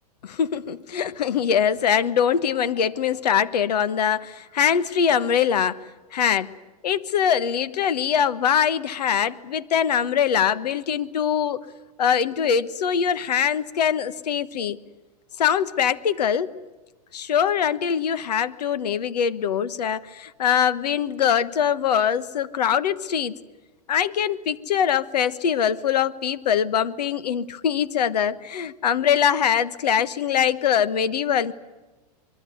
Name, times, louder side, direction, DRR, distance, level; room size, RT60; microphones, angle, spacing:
voice 1, 0.2-5.8 6.1-6.5 6.8-11.6 12.0-14.8 15.4-16.5 17.1-23.3 23.9-31.5, left 8 dB, 85° left, 15 dB, 1.4 m, -23 dB
23.5 x 23.0 x 9.4 m, 1.1 s
hypercardioid pair, 135°, 20 cm